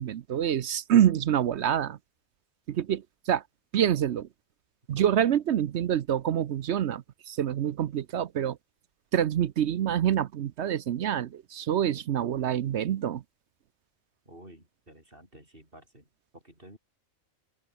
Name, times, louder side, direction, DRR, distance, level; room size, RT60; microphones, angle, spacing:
voice 1, 0.0-2.0 2.7-3.4 3.7-4.3 4.9-8.6 9.1-13.2, right 10 dB, 60° right, 0.9 m, -26 dB
voice 2, 14.2-16.8, right 1 dB, 40° right, 8.2 m, -52 dB
open air
omnidirectional pair, 1.4 m